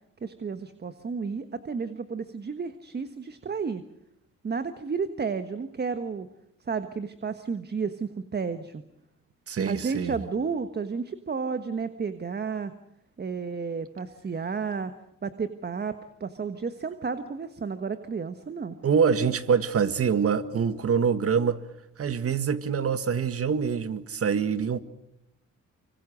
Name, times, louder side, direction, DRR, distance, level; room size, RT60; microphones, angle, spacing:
voice 1, 0.2-3.8 4.4-6.3 6.6-8.8 9.7-12.7 13.2-14.9 15.2-18.8, right 5 dB, 35° right, 1.4 m, -32 dB
voice 2, 9.5-10.2 18.8-21.6 22.0-24.8, right 6 dB, 50° right, 1.8 m, -25 dB
25.5 x 25.0 x 6.4 m
cardioid pair, 90°, 30 cm